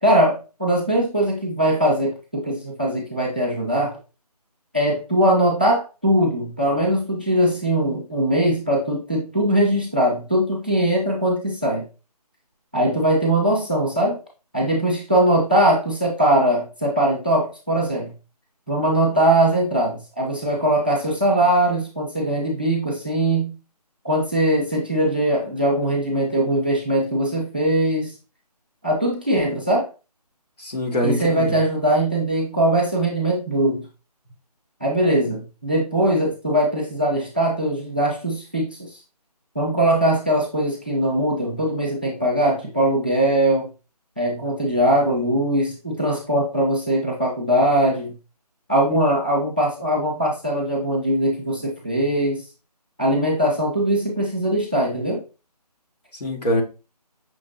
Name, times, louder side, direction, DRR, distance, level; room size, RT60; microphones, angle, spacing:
voice 1, 0.0-4.0 4.7-11.9 12.7-14.2 14.5-18.1 18.7-23.5 24.0-28.1 28.8-29.9 31.0-33.8 34.8-39.0 39.5-43.7 44.2-48.1 48.7-52.4 53.0-55.2, right 1 dB, 15° right, 0.5 m, -21 dB
voice 2, 30.6-31.6 56.2-56.6, left 1 dB, 75° left, 1.7 m, -23 dB
5.8 x 3.2 x 2.7 m
figure-of-eight pair, 175°, 21 cm